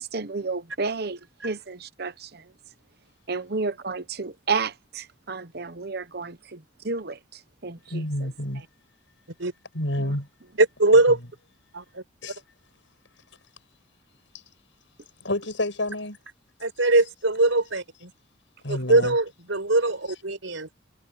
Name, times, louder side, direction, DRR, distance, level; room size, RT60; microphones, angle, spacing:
voice 1, 0.0-2.4 3.3-7.2 7.6-8.3 10.1-10.2, right 4 dB, 55° right, 1.0 m, -31 dB
voice 2, 7.9-8.6 9.7-10.3 12.2-12.4 14.3-14.4 15.2-16.2 18.6-19.2, left 1 dB, 75° left, 5.9 m, -29 dB
voice 3, 10.6-11.2 11.7-12.0 16.6-18.1 18.7-20.7, right 2 dB, 85° right, 4.8 m, -21 dB
head